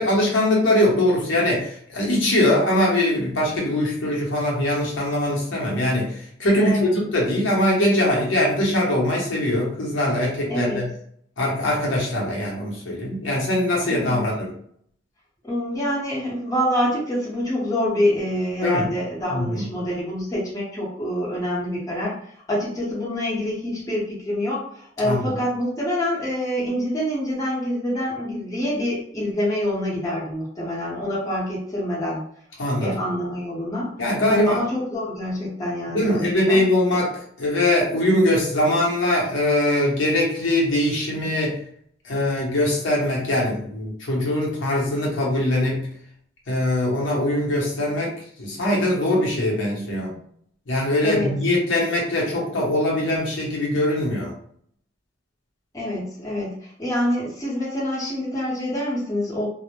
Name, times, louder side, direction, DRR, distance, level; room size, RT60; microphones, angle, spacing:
voice 1, 0.0-10.9 11.4-14.5 18.6-18.9 19.3-19.7 25.0-25.3 32.6-33.0 34.0-34.6 35.9-41.6 42.0-45.8 46.5-48.1 48.4-50.1 50.7-54.3, left 1 dB, 80° left, -3 dB, 0.8 m, -22 dB
voice 2, 6.6-6.9 10.5-10.8 13.9-14.2 15.4-22.1 22.5-32.2 32.8-33.9 34.3-36.6 41.2-41.3 50.1-50.2 51.0-51.3 55.7-59.5, left 1 dB, 20° left, -7 dB, 0.9 m, -26 dB
2.1 x 2.0 x 2.9 m, 0.63 s
head